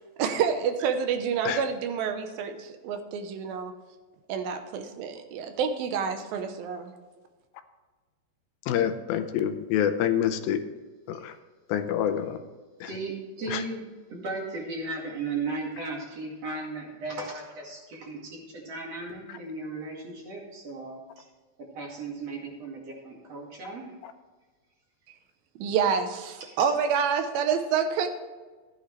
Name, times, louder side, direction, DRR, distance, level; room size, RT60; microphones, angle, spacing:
voice 1, 0.2-3.7 4.3-6.9 25.6-28.1, right 7 dB, 85° right, 7 dB, 2.7 m, -28 dB
voice 2, 8.7-10.6 11.1-11.3 11.7-12.4 12.8-12.9 13.5-13.6, left 9 dB, 85° left, 9 dB, 2.6 m, -26 dB
voice 3, 12.9-21.3 21.6-24.0 26.4-26.7, right 3 dB, 50° right, -1 dB, 3.0 m, -36 dB
14.0 x 9.7 x 3.3 m, 1.3 s
omnidirectional pair, 4.1 m